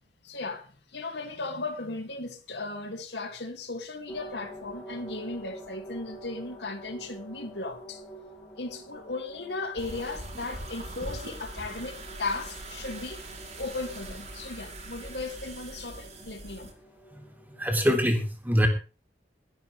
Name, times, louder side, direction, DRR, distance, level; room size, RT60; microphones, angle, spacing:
voice 1, 0.2-8.0 8.6-13.2 13.6-16.7, left 3 dB, 75° left, 2.8 m, -36 dB
sound 1, 4.1-17.9, right 1 dB, 15° left, 7.7 m, -47 dB
sound 2, 9.8-16.7, right 2 dB, 40° right, 4.8 m, -42 dB
voice 2, 17.6-18.7, equal, 10° right, 3.2 m, -24 dB
22.5 x 10.0 x 3.5 m
head